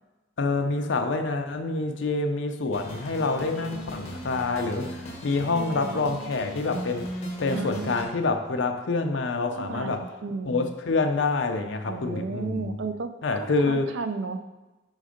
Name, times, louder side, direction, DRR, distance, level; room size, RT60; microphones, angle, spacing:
voice 1, 0.4-7.1 7.4-10.0 10.4-12.8 13.2-13.9, left 3 dB, 80° left, 5 dB, 0.6 m, -27 dB
sound 1, 2.7-8.1, equal, 35° left, 1.0 m, -37 dB
voice 2, 5.5-6.1 7.5-8.0 9.5-10.7 11.8-13.1 13.4-14.4, right 4 dB, 75° right, 9 dB, 0.4 m, -34 dB
5.0 x 4.0 x 5.0 m, 1.1 s
head